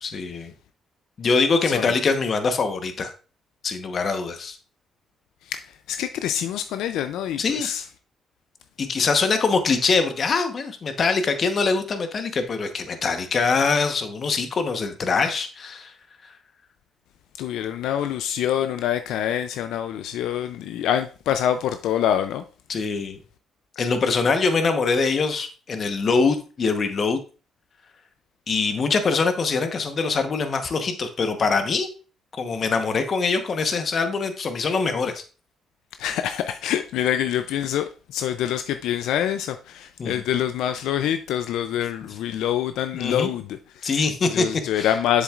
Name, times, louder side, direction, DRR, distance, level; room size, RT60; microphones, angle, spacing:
voice 1, 0.0-0.5 1.2-3.1 3.6-4.6 7.4-7.7 8.8-15.9 22.7-23.2 23.8-27.2 28.5-31.9 32.4-35.2 40.0-40.2 42.9-43.3 43.8-44.9, left 4 dB, 45° left, 1.0 m, -23 dB
voice 2, 5.9-7.8 17.4-22.4 36.0-45.2, left 10 dB, 90° left, 0.4 m, -26 dB
7.3 x 7.1 x 2.4 m
cardioid pair, 90°, 0 cm